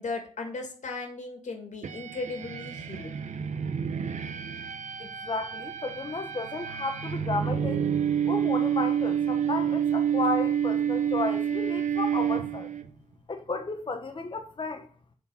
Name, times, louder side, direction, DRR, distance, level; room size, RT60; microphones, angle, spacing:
voice 1, 0.0-3.2, left 3 dB, 85° left, 2.4 m, -36 dB
sound 1, 1.8-12.9, right 8 dB, 80° right, 0.9 m, -29 dB
voice 2, 5.0-7.8 8.3-12.7 13.3-14.9, left 3 dB, 45° left, 1.0 m, -33 dB
9.2 x 4.3 x 7.1 m
wide cardioid pair, 80°, 12 cm